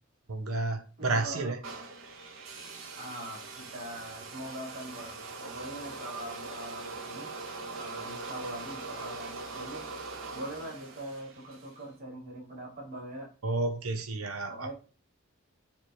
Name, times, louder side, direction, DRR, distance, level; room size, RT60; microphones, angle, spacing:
voice 1, 0.3-1.6 13.4-14.7, right 3 dB, 90° right, 1.1 m, -31 dB
voice 2, 1.0-1.5 3.0-7.3 7.7-9.9 10.3-13.3 14.5-14.7, right 1 dB, 45° right, 3.6 m, -42 dB
sound 1, 1.6-11.8, right 3 dB, 70° right, 2.5 m, -42 dB
7.3 x 3.5 x 6.1 m
head